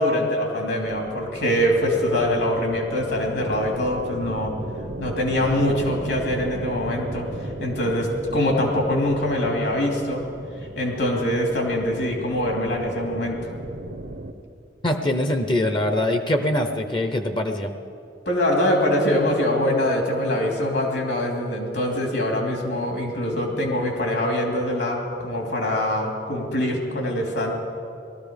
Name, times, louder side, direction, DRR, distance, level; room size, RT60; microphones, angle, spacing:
voice 1, 0.0-4.5 5.0-7.3 7.6-10.3 10.8-13.4 18.2-27.5, left 1 dB, 70° left, 1 dB, 2.7 m, -23 dB
sound 1, 0.8-14.3, right 1 dB, 70° right, 0.8 m, -36 dB
voice 2, 14.8-17.7, left 1 dB, 25° left, 7 dB, 0.7 m, -23 dB
18.5 x 13.5 x 5.1 m, 2.6 s
head